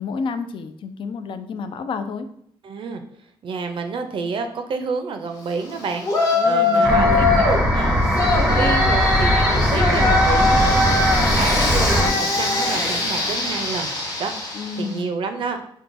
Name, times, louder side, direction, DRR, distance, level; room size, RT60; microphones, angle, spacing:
voice 1, 0.0-2.3 6.3-7.4 9.9-10.7 14.5-15.1, left 5 dB, 55° left, 9 dB, 0.4 m, -30 dB
voice 2, 2.6-3.0 3.4-6.1 6.4-13.9 14.2-14.3 14.8-15.6, right 5 dB, 60° right, 6 dB, 0.4 m, -29 dB
Yell, 6.0-7.6 8.1-14.9, left 2 dB, 35° left, 1.1 m, -21 dB
sound 1, 6.8-12.1, equal, 5° right, 0.7 m, -20 dB
4.6 x 2.2 x 2.5 m, 0.71 s
cardioid pair, 120°, 10 cm